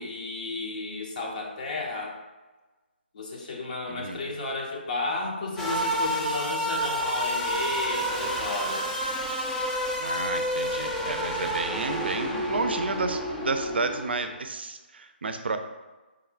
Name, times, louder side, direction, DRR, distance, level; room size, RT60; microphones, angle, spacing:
voice 1, 0.0-2.2 3.1-9.0, left 3 dB, 45° left, 0 dB, 0.7 m, -33 dB
voice 2, 3.9-4.3 10.0-15.6, right 3 dB, 70° right, 8 dB, 0.4 m, -31 dB
sound 1, 5.6-14.4, equal, 10° left, 0.4 m, -29 dB
4.8 x 2.3 x 3.3 m, 1.2 s
figure-of-eight pair, 145°, 6 cm